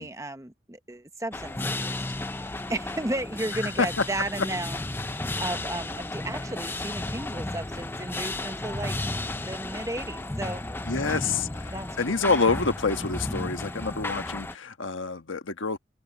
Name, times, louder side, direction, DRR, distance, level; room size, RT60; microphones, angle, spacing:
voice 1, 0.0-2.0 2.3-4.8 5.4-9.0 9.3-10.7 11.7-12.4, right 1 dB, 15° right, 0.9 m, -34 dB
sound 1, 1.3-14.5, left 2 dB, 10° left, 0.4 m, -33 dB
voice 2, 10.9-15.8, left 4 dB, 85° left, 1.3 m, -27 dB
head